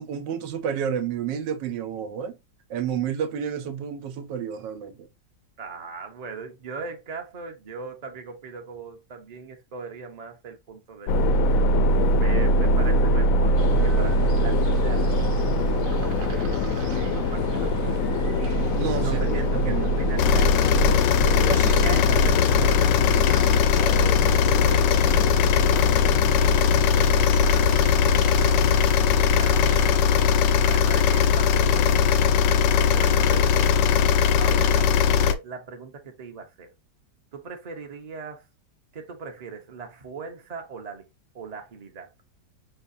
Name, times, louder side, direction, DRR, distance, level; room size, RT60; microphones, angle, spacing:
voice 1, 0.0-2.4 2.7-5.1 18.8-19.2 19.5-20.0 21.5-22.0, right 8 dB, 85° right, 1.4 m, -30 dB
voice 2, 5.6-11.4 12.2-16.5 16.9-18.0 19.0-23.9 24.6-26.9 27.2-27.7 28.1-32.5 32.9-33.9 34.4-36.7 37.3-38.5 38.9-41.1 41.3-42.1, right 5 dB, 30° right, 0.7 m, -40 dB
sound 1, 11.1-27.5, equal, 70° left, 0.8 m, -24 dB
sound 2, 13.6-30.3, right 4 dB, 60° right, 1.0 m, -34 dB
sound 3, 20.2-35.3, left 7 dB, 90° left, 1.3 m, -20 dB
5.7 x 3.2 x 2.6 m
omnidirectional pair, 1.9 m